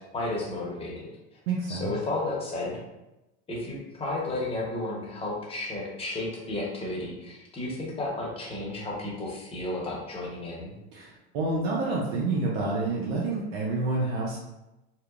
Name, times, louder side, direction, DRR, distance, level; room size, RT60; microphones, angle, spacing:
voice 1, 0.1-1.1 1.7-2.8 3.5-10.7, left 2 dB, 20° left, -3 dB, 0.8 m, -33 dB
voice 2, 1.5-1.9 10.9-14.4, right 3 dB, 85° right, -5 dB, 0.6 m, -28 dB
2.8 x 2.1 x 2.4 m, 0.97 s
supercardioid pair, 105°, 31 cm